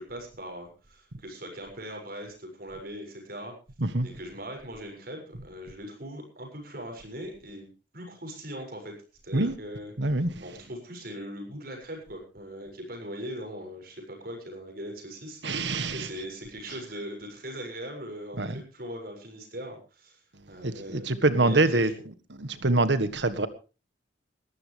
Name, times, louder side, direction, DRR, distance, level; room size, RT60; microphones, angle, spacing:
voice 1, 0.0-3.5 4.0-8.9 9.2-9.9 10.4-20.2 20.5-21.9, equal, 55° right, 7.0 m, -40 dB
voice 2, 10.0-10.4 15.4-16.1 18.4-18.6 20.6-21.9 22.4-23.5, right 2 dB, 75° right, 1.6 m, -25 dB
20.5 x 14.5 x 3.4 m
head